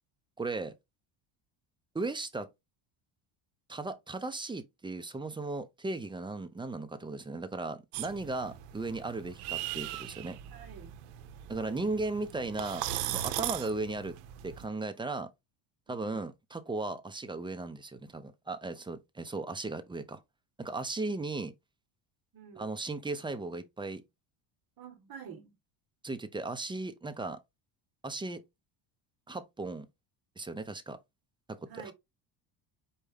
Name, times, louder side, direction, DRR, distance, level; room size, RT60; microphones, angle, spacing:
voice 1, 0.4-0.7 1.9-2.5 3.7-10.4 11.5-14.2 14.4-15.3 15.9-20.2 20.6-21.5 22.6-24.0 26.0-27.4 28.0-28.4 29.3-29.9 30.4-31.0 31.5-31.9, right 3 dB, 10° right, 0.4 m, -36 dB
sound 1, 7.9-14.6, right 13 dB, 85° right, 0.7 m, -39 dB
voice 2, 10.5-10.9 11.6-11.9 15.9-16.3 22.3-22.7 24.8-25.5 31.7-31.9, right 7 dB, 45° right, 1.3 m, -48 dB
4.7 x 2.7 x 3.4 m
cardioid pair, 105°, 49 cm